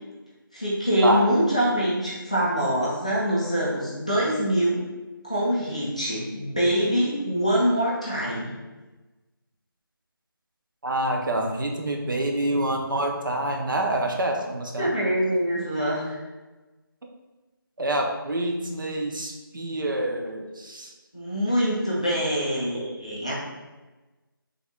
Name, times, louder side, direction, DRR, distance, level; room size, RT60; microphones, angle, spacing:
voice 1, 0.5-4.8 5.2-8.5 14.8-16.2 21.1-23.3, equal, 15° left, -8 dB, 0.4 m, -24 dB
voice 2, 10.8-14.9 17.8-20.9, right 1 dB, 60° right, 1 dB, 0.5 m, -27 dB
3.4 x 2.1 x 3.6 m, 1.2 s
figure-of-eight pair, 175°, 12 cm